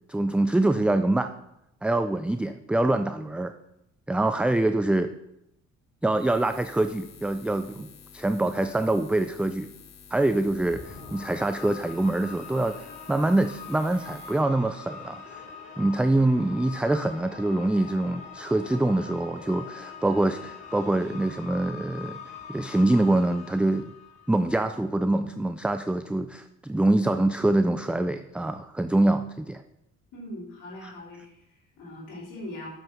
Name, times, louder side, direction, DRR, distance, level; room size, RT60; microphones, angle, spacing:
voice 1, 0.1-1.3 1.8-3.5 4.1-5.1 6.0-7.9 8.1-9.7 10.1-12.8 13.1-15.4 15.8-22.2 22.5-23.9 24.3-29.6, right 2 dB, 5° right, 9 dB, 0.3 m, -25 dB
Buzz, 6.1-14.4, left 7 dB, 60° left, 1.2 m, -50 dB
sound 1, 10.4-24.8, left 6 dB, 25° left, 2.8 m, -43 dB
voice 2, 30.1-32.7, left 1 dB, 85° left, -6 dB, 3.2 m, -41 dB
6.9 x 6.3 x 5.7 m, 0.85 s
cardioid pair, 90°, 30 cm